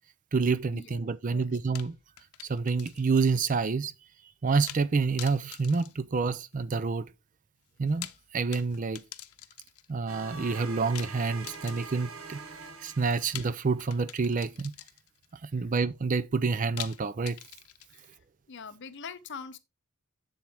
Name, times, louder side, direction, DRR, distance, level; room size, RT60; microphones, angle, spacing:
voice 1, 0.3-2.0 2.5-3.9 4.4-7.1 7.8-9.0 9.9-12.4 12.8-14.7 15.4-17.4, right 4 dB, 35° right, 0.4 m, -28 dB
sound 1, 1.7-3.3 3.6-3.7 4.7-4.9 5.2-6.7 7.8-9.9 10.9-12.1 13.3-15.3 16.8-18.2, left 14 dB, 90° left, 0.7 m, -45 dB
sound 2, 10.1-14.0, right 4 dB, 70° right, 1.1 m, -44 dB
voice 2, 18.5-19.6, left 5 dB, 55° left, 0.7 m, -43 dB
7.3 x 7.2 x 3.4 m
head